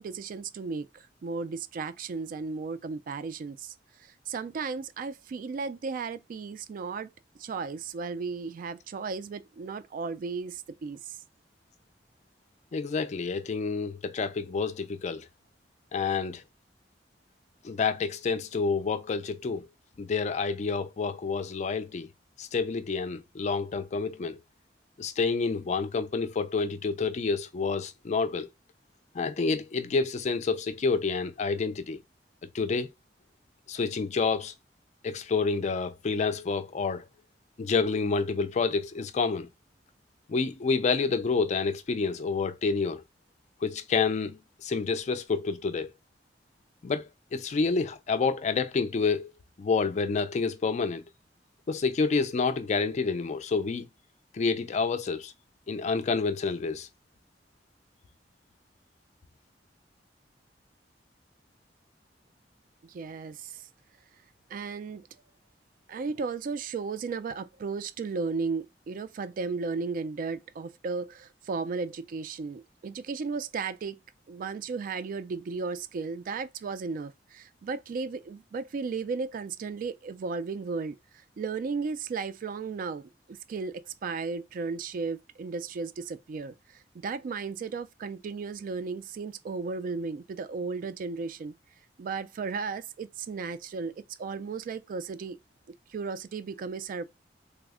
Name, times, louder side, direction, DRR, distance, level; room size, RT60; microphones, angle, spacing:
voice 1, 0.0-3.7 4.0-7.1 7.4-11.2 62.8-63.7 64.5-65.1 65.9-74.0 74.3-81.0 81.4-91.5 92.0-95.4 95.9-97.0, right 4 dB, 50° right, 0.3 m, -35 dB
voice 2, 12.7-15.3 15.9-16.4 17.6-19.7 20.0-22.1 22.4-24.4 25.0-28.5 29.1-32.0 32.5-32.9 33.7-34.5 35.0-37.0 37.6-39.5 40.3-43.0 43.6-45.9 46.8-49.3 49.6-51.0 51.7-53.9 54.3-55.3 55.7-56.9, left 4 dB, 40° left, 0.4 m, -28 dB
3.4 x 2.0 x 3.5 m
head